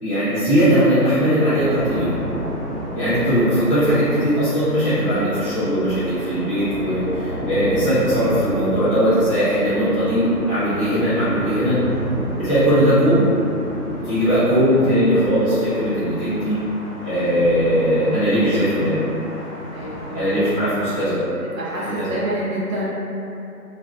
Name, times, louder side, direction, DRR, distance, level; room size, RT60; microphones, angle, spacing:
voice 1, 0.0-2.2 2.9-11.8 12.4-13.2 14.0-16.6 17.0-19.0 20.1-21.2 22.0-22.1, equal, 20° left, -18 dB, 1.0 m, -19 dB
sound 1, 1.4-21.0, equal, 30° right, 0.9 m, -31 dB
voice 2, 19.7-20.4 21.5-22.9, right 1 dB, 55° right, -9 dB, 0.7 m, -28 dB
2.3 x 2.3 x 2.3 m, 2.8 s
figure-of-eight pair, 155°, 48 cm